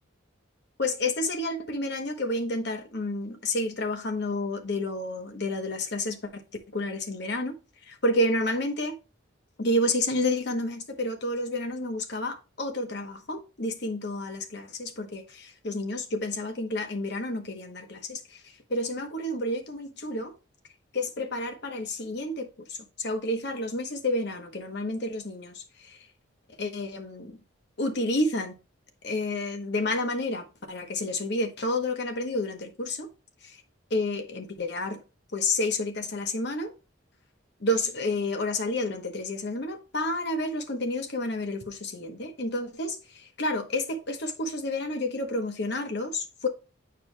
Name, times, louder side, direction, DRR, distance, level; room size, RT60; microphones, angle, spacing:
voice 1, 0.8-6.4 6.7-7.5 7.9-9.0 9.6-18.4 18.7-20.3 20.9-26.0 26.6-27.4 27.8-28.6 29.0-33.1 33.4-33.6 33.9-35.0 35.3-36.7 37.6-46.5, left 1 dB, 55° left, 0.9 m, -30 dB
9.0 x 4.7 x 2.2 m
head